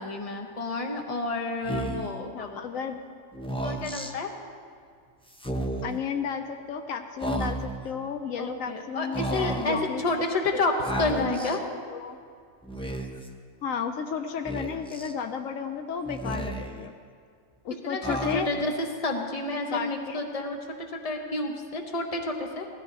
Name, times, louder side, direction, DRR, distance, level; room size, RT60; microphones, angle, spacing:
voice 1, 0.0-2.8 3.6-4.3 8.4-11.6 17.8-18.7 19.0-22.7, left 2 dB, 30° left, 3 dB, 1.1 m, -30 dB
Speech, 1.6-2.2 3.3-4.1 5.3-6.0 7.2-7.9 9.1-9.8 10.8-11.6 12.6-13.3 14.5-15.1 16.1-16.9 18.0-18.7, right 1 dB, 5° left, 0.4 m, -33 dB
voice 2, 2.3-3.0 5.8-10.2 10.5-11.6 11.9-12.2 13.6-16.9 17.6-18.5 19.7-20.2, left 6 dB, 80° left, 7 dB, 1.1 m, -33 dB
16.5 x 13.5 x 4.1 m, 2.1 s
omnidirectional pair, 1.4 m